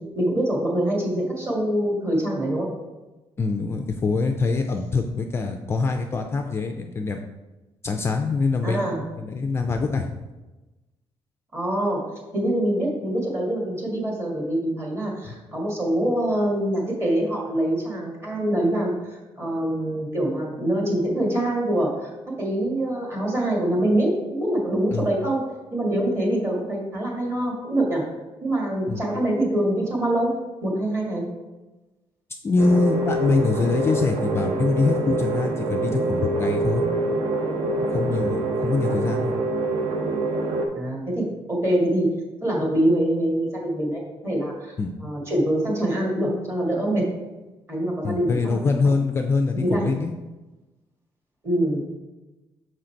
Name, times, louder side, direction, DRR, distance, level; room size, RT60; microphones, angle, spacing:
voice 1, 0.1-2.7 8.6-9.0 11.5-12.0 12.3-22.1 22.4-25.4 25.7-28.0 28.4-30.3 30.6-31.2 40.7-42.1 42.4-44.7 45.0-47.1 47.7-48.6 48.8-48.9 49.5-49.9 51.4-51.8, right 1 dB, 25° right, -2 dB, 1.7 m, -24 dB
voice 2, 3.4-7.2 7.8-10.1 15.2-15.3 24.9-25.1 28.9-29.0 32.4-36.8 37.9-39.3 44.8-44.9 48.0-50.1, left 4 dB, 25° left, 4 dB, 0.3 m, -24 dB
sound 1, 32.6-40.7, right 2 dB, 65° right, 0.9 m, -25 dB
6.3 x 3.8 x 4.4 m, 1.1 s
cardioid pair, 155°, 10 cm